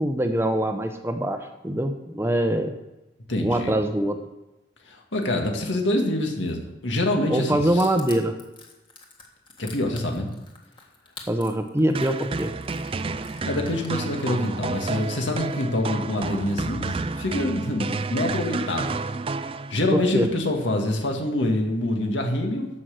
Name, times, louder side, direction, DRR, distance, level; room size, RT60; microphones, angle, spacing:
voice 1, 0.0-2.7 3.4-4.2 7.3-8.4 11.3-12.5 19.9-20.3, right 1 dB, 15° right, 6 dB, 0.7 m, -23 dB
voice 2, 3.3-3.8 4.9-7.9 9.6-10.3 13.5-19.0 19.7-22.7, left 1 dB, 85° left, 2 dB, 1.9 m, -26 dB
Crushing, 7.8-14.5, left 4 dB, 25° left, 1.6 m, -46 dB
sound 1, 11.9-20.1, right 3 dB, 30° right, 0.3 m, -30 dB
14.0 x 5.8 x 6.5 m, 1.0 s
head